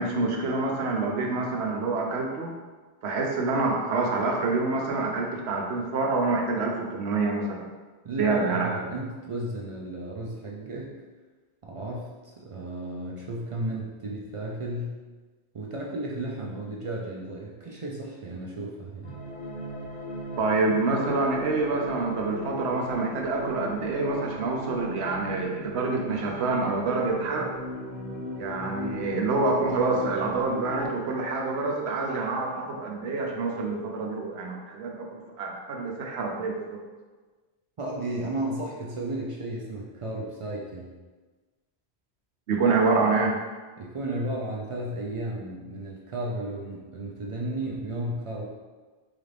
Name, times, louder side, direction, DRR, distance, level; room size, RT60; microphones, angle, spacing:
voice 1, 0.0-2.5 3.0-7.7 8.2-8.9 20.4-27.5 28.4-36.8 42.5-43.4, right 3 dB, 85° right, 1 dB, 0.9 m, -27 dB
voice 2, 8.0-11.0 11.6-15.0 15.5-19.2 37.8-40.9 43.8-48.5, right 1 dB, 55° right, -3 dB, 0.3 m, -34 dB
sound 1, 19.0-30.9, equal, 55° left, 1.7 m, -37 dB
3.9 x 2.5 x 3.3 m, 1.3 s
omnidirectional pair, 1.1 m